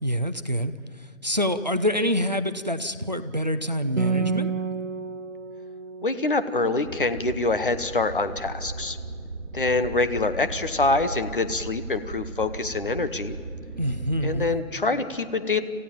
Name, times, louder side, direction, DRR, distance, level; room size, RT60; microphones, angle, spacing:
voice 1, 0.0-4.5 13.8-14.5, equal, 35° right, 11 dB, 0.6 m, -26 dB
Acoustic guitar, 4.0-7.7, right 5 dB, 70° right, 1.5 m, -31 dB
voice 2, 6.0-9.0 9.5-13.4 14.2-15.6, left 3 dB, 40° left, 10 dB, 1.0 m, -25 dB
sound 1, 6.8-14.6, right 3 dB, 55° right, 2.8 m, -37 dB
27.0 x 15.0 x 8.7 m, 2.1 s
hypercardioid pair, 180°, 40 cm